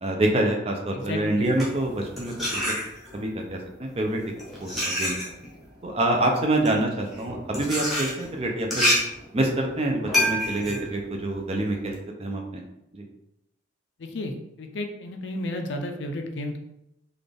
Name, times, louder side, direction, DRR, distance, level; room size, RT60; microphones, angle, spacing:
voice 1, 0.0-2.7 3.1-4.2 4.6-5.2 5.8-8.9 9.3-12.6 12.9-13.1, right 1 dB, 30° right, 2 dB, 0.5 m, -26 dB
voice 2, 0.9-1.5 14.0-16.6, left 1 dB, 60° left, 4 dB, 0.5 m, -33 dB
sound 1, 1.3-3.3 4.1-12.0, left 1 dB, ahead, 0.9 m, -28 dB
4.0 x 2.4 x 3.3 m, 0.85 s
head